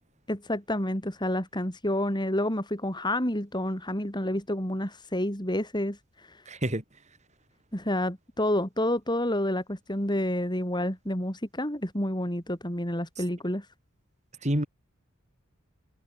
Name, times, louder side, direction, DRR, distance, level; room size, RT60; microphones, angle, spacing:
voice 1, 0.3-6.0 7.7-13.6, left 1 dB, 20° left, 6.5 m, -29 dB
voice 2, 6.5-6.8 14.4-14.7, right 1 dB, 35° right, 4.0 m, -27 dB
head